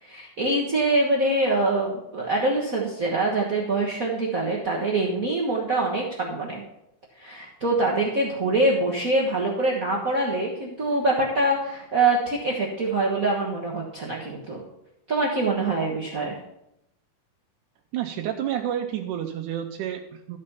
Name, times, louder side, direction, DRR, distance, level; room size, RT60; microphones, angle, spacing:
voice 1, 0.0-6.6 7.2-14.6 15.1-16.4, right 2 dB, 60° right, -4 dB, 0.9 m, -24 dB
voice 2, 17.9-20.4, right 10 dB, 80° right, 4 dB, 2.1 m, -30 dB
13.0 x 5.3 x 5.5 m, 0.84 s
omnidirectional pair, 3.6 m